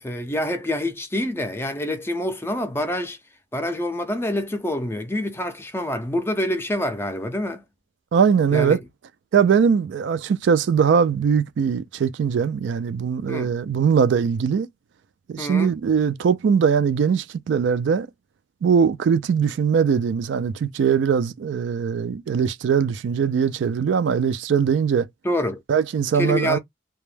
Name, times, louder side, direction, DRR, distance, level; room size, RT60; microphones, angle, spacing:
voice 1, 0.0-3.2 3.5-7.6 8.5-8.8 13.3-13.5 15.4-15.7 25.2-25.6 26.1-26.6, left 1 dB, 15° left, 0.4 m, -26 dB
voice 2, 8.1-8.8 9.3-14.7 15.3-18.1 18.6-25.1 25.7-26.6, right 6 dB, 80° right, 0.3 m, -21 dB
2.2 x 2.0 x 3.1 m
head